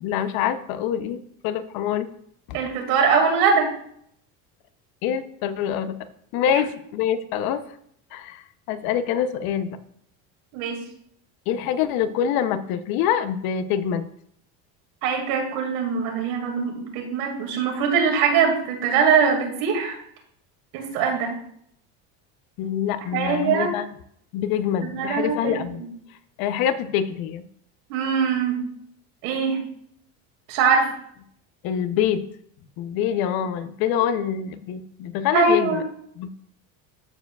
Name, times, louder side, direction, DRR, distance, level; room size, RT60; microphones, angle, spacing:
voice 1, 0.0-2.1 2.5-2.6 5.0-6.0 6.3-7.6 8.1-9.8 11.5-14.0 22.6-23.9 24.3-25.8 26.4-27.4 31.6-32.3 32.8-35.8 36.2-36.3, left 9 dB, 60° left, 12 dB, 0.7 m, -25 dB
voice 2, 2.5-3.7 6.5-6.6 10.5-10.8 15.0-20.0 20.7-21.3 23.1-23.7 24.9-25.6 27.9-28.6 29.2-29.6 30.5-30.9 35.3-35.8, right 5 dB, 80° right, 1 dB, 2.3 m, -22 dB
13.5 x 4.7 x 2.3 m, 0.67 s
cardioid pair, 135°, 41 cm